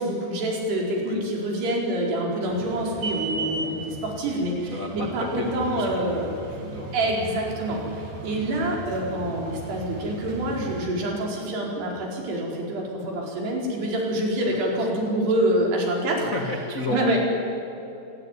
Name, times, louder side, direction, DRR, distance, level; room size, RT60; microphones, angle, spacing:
voice 1, 0.0-6.3 6.9-16.3 16.9-17.2, right 1 dB, 70° right, -1 dB, 6.6 m, -26 dB
sound 1, 2.4-10.9, right 3 dB, 40° right, 3.2 m, -37 dB
voice 2, 4.7-6.9 7.5-7.8 14.4-15.0 15.6-17.2, left 1 dB, 75° left, 1 dB, 0.7 m, -33 dB
26.5 x 17.5 x 9.8 m, 2.8 s
omnidirectional pair, 4.9 m